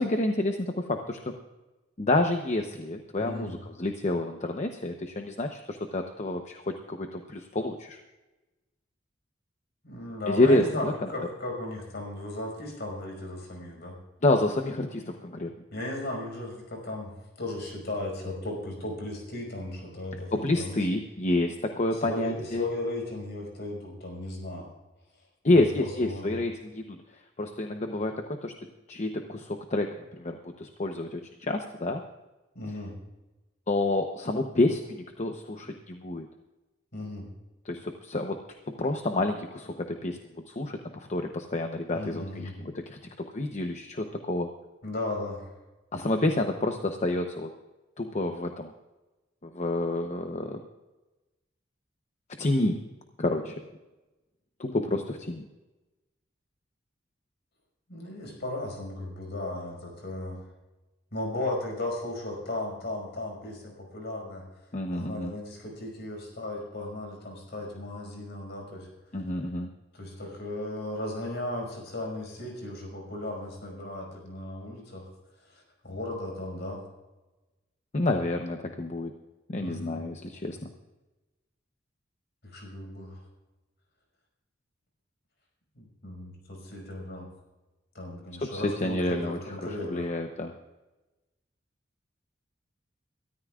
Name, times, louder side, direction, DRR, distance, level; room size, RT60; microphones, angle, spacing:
voice 1, 0.0-1.4 2.0-8.0 10.3-10.9 14.2-15.5 20.3-22.7 25.4-27.0 27.4-28.5 28.9-32.0 33.7-36.3 37.6-38.4 38.7-44.5 45.9-47.5 48.0-48.7 49.4-50.6 52.4-52.9 53.2-53.6 54.6-55.5 64.7-65.3 69.1-69.7 77.9-79.1 79.5-80.7 88.4-89.4 89.7-90.5, left 2 dB, 40° left, 5 dB, 0.8 m, -29 dB
voice 2, 3.2-3.6 9.8-13.9 15.7-17.1 17.4-20.8 21.9-24.7 25.5-26.3 32.6-32.9 36.9-37.3 41.9-42.6 44.8-45.5 57.9-60.4 61.1-64.4 64.9-68.9 69.9-75.1 75.4-76.8 79.6-80.0 82.4-83.2 85.8-87.3 87.9-90.1, left 1 dB, 60° left, 0 dB, 5.5 m, -36 dB
23.0 x 13.5 x 2.4 m, 1.1 s
head